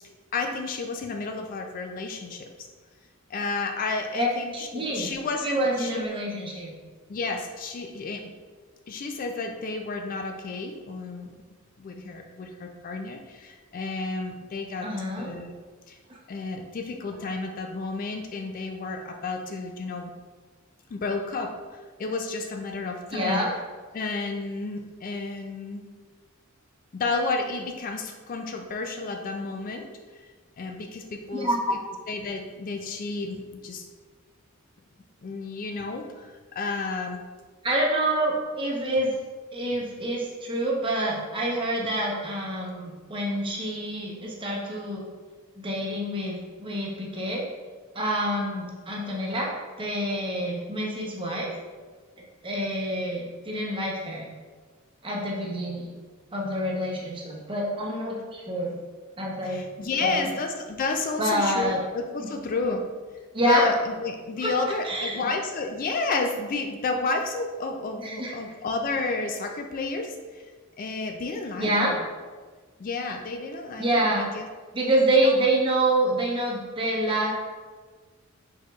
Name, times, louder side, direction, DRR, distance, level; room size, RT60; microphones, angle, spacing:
voice 1, 0.3-2.5 3.3-6.1 7.1-8.2 8.9-11.3 11.8-14.9 15.2-15.5 15.9-16.0 16.3-20.1 20.9-23.4 23.9-25.8 26.9-29.9 30.2-30.3 30.6-31.5 32.1-33.9 35.2-37.2 59.4-62.8 63.5-70.4 70.8-72.0 72.8-74.5 75.1-75.3, left 3 dB, 40° left, 4 dB, 0.3 m, -31 dB
voice 2, 4.1-5.1 5.4-6.7 14.8-15.3 23.1-23.5 31.3-31.7 37.6-39.1 39.5-45.0 45.6-47.4 47.9-51.5 52.4-54.2 55.0-55.9 56.3-58.7 59.2-59.7 60.0-60.3 61.2-61.8 62.2-62.3 63.3-63.7 64.4-64.5 64.8-65.3 68.0-68.3 71.6-72.0 73.8-74.3 74.7-77.3, right 1 dB, 25° right, -3 dB, 0.8 m, -27 dB
4.7 x 4.4 x 2.3 m, 1.4 s
head